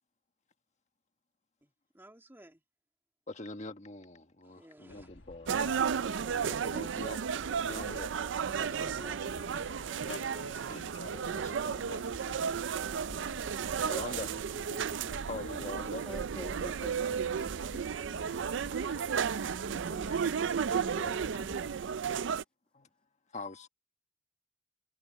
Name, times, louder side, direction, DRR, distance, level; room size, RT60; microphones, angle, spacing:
voice 1, 1.6-2.6 4.4-5.1 8.4-10.7, right 1 dB, 10° right, 2.0 m, -55 dB
voice 2, 3.3-5.7 6.2-7.2 7.5-8.1 10.7-12.0 13.9-14.3 15.2-16.0 19.7-20.3 20.6-21.4 22.7-22.9 23.3-23.7, left 2 dB, 40° left, 1.6 m, -44 dB
sound 1, 4.9-21.8, left 2 dB, 85° left, 1.4 m, -49 dB
sound 2, 5.5-22.4, right 7 dB, 80° right, 0.4 m, -33 dB
voice 3, 15.8-17.2 17.7-17.8 21.7-21.9, equal, 5° left, 1.7 m, -46 dB
head